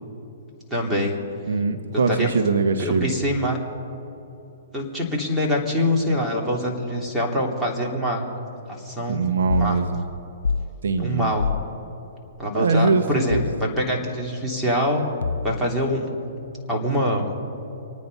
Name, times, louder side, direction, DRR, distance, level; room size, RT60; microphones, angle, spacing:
voice 1, 0.7-1.1 2.1-2.3 2.8-3.6 4.7-8.3 8.7-9.2 9.6-9.8 11.0-11.4 12.4-15.0 15.4-16.1 16.7-17.3, equal, 10° right, -2 dB, 3.3 m, -24 dB
voice 2, 1.5-3.1 9.1-10.0 10.8-11.3 12.5-13.4, right 4 dB, 80° right, 7 dB, 1.2 m, -22 dB
sound 1, 9.5-9.7 10.4-10.7 11.4-11.7 13.3-13.6 15.2-15.7, left 5 dB, 85° left, 0.4 m, -25 dB
27.5 x 9.5 x 5.5 m, 3.0 s
hypercardioid pair, 135°, 0 cm